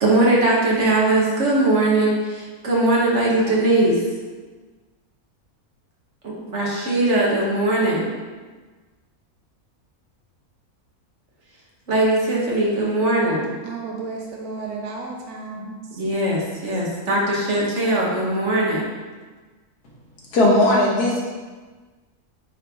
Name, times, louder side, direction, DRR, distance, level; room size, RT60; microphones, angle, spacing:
voice 1, 0.0-4.0 6.2-8.1 11.9-13.5 16.0-18.8, right 2 dB, 55° right, -4 dB, 1.3 m, -20 dB
voice 2, 13.7-15.8, right 3 dB, 75° right, 0 dB, 1.2 m, -33 dB
voice 3, 20.3-21.3, left 1 dB, 85° left, -4 dB, 1.8 m, -17 dB
8.9 x 3.2 x 3.4 m, 1.4 s
omnidirectional pair, 1.6 m